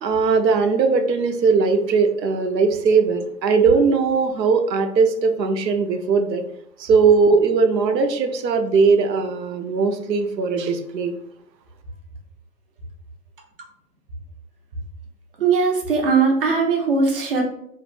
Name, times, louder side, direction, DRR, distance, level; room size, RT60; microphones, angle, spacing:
voice 1, 0.0-6.4 6.8-11.1, right 4 dB, 85° right, 7 dB, 0.6 m, -19 dB
voice 2, 15.4-17.4, right 4 dB, 35° right, 2 dB, 0.5 m, -19 dB
2.4 x 2.0 x 3.2 m, 0.73 s
figure-of-eight pair, 130°, 49 cm